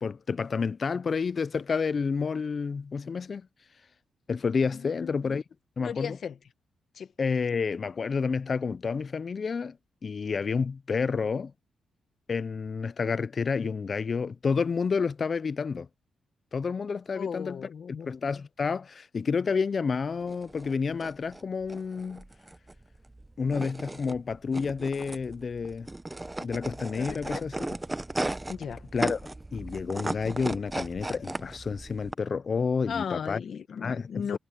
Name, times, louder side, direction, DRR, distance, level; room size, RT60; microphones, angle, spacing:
voice 1, 0.0-3.5 4.3-5.4 5.8-6.2 7.2-9.8 10.0-11.5 12.3-15.9 16.5-17.7 18.0-22.2 23.4-25.9 26.4-27.5 28.9-29.2 29.5-33.4 33.8-34.4, left 5 dB, 40° left, 0.5 m, -29 dB
voice 2, 4.7-5.2 5.8-6.4 6.9-7.1 17.1-18.1 27.0-27.4 28.5-28.8 32.9-34.4, left 7 dB, 60° left, 1.5 m, -36 dB
sound 1, 20.2-32.1, right 2 dB, 15° right, 0.7 m, -36 dB
cardioid pair, 115°, 0 cm